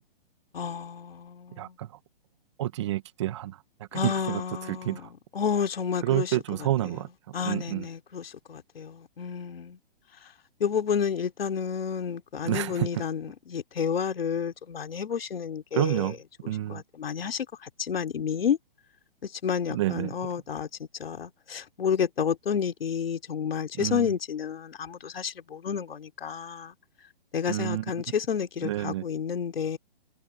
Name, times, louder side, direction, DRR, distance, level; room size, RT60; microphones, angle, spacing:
voice 1, 0.5-1.8 3.9-5.0 5.3-6.3 7.3-9.8 10.6-16.1 16.7-18.6 19.4-26.7 27.3-29.8, left 7 dB, 70° left, 3.7 m, -30 dB
voice 2, 1.6-2.0 2.6-5.1 6.0-7.1 7.4-7.9 12.4-13.0 15.7-16.2 16.5-16.8 19.7-20.1 23.7-24.1 27.5-27.9 28.6-29.0, right 14 dB, 30° right, 1.9 m, -29 dB
hypercardioid pair, 175°, 30 cm